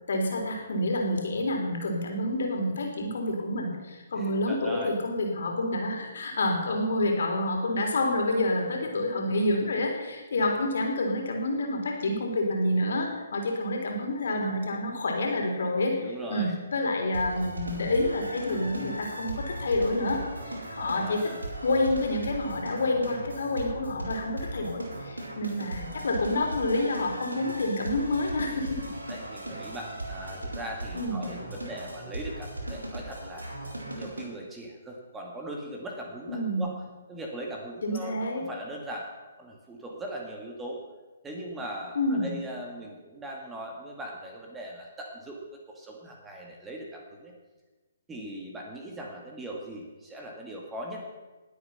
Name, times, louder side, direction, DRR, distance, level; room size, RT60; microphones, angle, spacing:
voice 1, 0.1-21.3 21.6-28.8 30.9-31.3 36.3-36.7 37.8-38.4 42.0-42.4, left 1 dB, 65° left, 2 dB, 3.7 m, -28 dB
voice 2, 4.1-4.9 16.0-16.6 20.8-21.5 29.1-33.5 34.0-36.7 37.1-39.1 39.4-40.8 41.2-47.3 48.1-51.1, right 1 dB, 10° right, 0 dB, 2.1 m, -40 dB
sound 1, 17.1-34.3, right 1 dB, 85° right, 4.1 m, -38 dB
20.0 x 8.3 x 5.8 m, 1.2 s
figure-of-eight pair, 135°, 0 cm